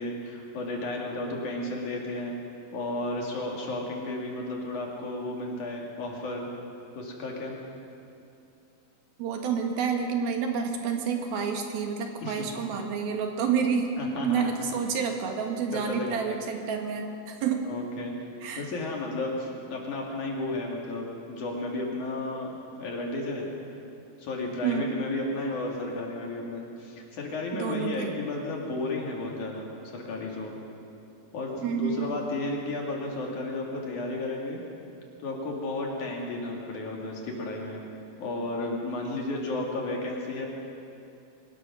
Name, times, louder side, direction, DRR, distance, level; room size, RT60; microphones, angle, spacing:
voice 1, 0.0-2.4 2.7-6.5 7.0-7.6 12.2-12.5 14.0-14.5 15.9-16.2 17.7-18.3 18.6-23.5 24.2-30.5 31.3-34.6 35.2-37.8 38.2-40.5, left 2 dB, 55° left, -1 dB, 3.6 m, -33 dB
voice 2, 9.2-17.7 18.4-18.7 24.6-25.0 27.5-28.1 31.6-32.2, right 6 dB, 75° right, 3 dB, 3.3 m, -29 dB
24.0 x 19.0 x 6.2 m, 2.7 s
omnidirectional pair, 4.5 m